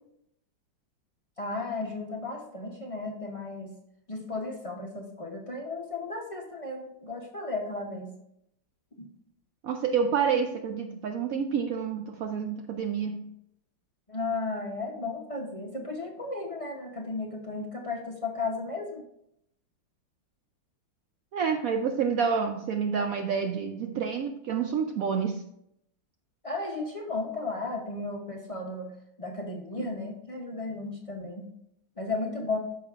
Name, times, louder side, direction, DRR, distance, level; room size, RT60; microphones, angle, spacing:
voice 1, 1.4-3.7 4.1-8.1 9.0-9.1 14.1-19.0 26.4-28.9 29.2-31.5 32.0-32.6, left 3 dB, 60° left, -1 dB, 0.3 m, -34 dB
voice 2, 9.6-13.3 21.3-25.5, right 6 dB, 85° right, 5 dB, 0.7 m, -28 dB
13.0 x 5.0 x 2.4 m, 0.76 s
omnidirectional pair, 2.0 m